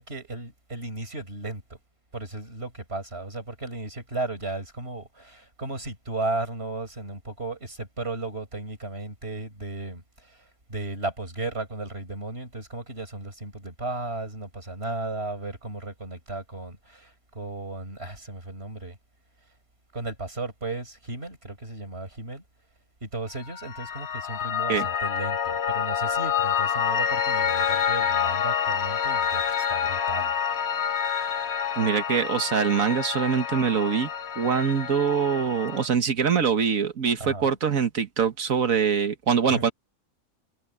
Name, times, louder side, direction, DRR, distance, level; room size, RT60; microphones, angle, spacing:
voice 1, 0.0-1.6 2.1-10.4 10.7-19.0 19.9-22.4 23.0-30.3 37.2-37.6 39.5-39.7, right 2 dB, 45° right, 6.2 m, -35 dB
Piano, 23.5-35.9, left 8 dB, 55° left, 1.0 m, -27 dB
voice 2, 31.8-34.1 34.4-39.7, right 7 dB, 65° right, 1.8 m, -24 dB
omnidirectional pair, 1.5 m